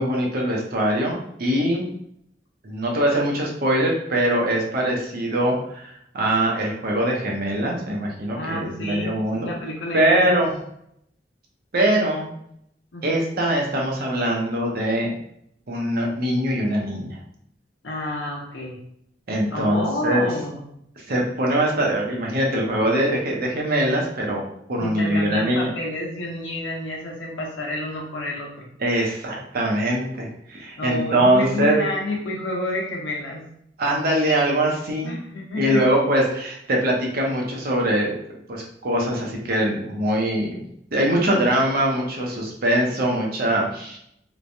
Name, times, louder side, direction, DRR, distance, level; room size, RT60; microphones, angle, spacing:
voice 1, 0.0-1.8 2.6-9.5 9.9-10.5 11.7-12.3 13.0-15.1 15.7-17.2 19.3-20.2 21.0-24.4 24.7-25.7 28.8-31.8 33.8-35.1 35.5-38.2 38.5-40.6 40.9-44.0, right 1 dB, 55° right, -2 dB, 0.7 m, -22 dB
voice 2, 8.3-10.2 12.9-13.2 17.8-18.8 19.5-20.6 24.8-28.7 30.8-33.4 35.0-35.8, left 1 dB, 90° left, -1 dB, 0.8 m, -29 dB
3.2 x 2.1 x 2.6 m, 0.73 s
head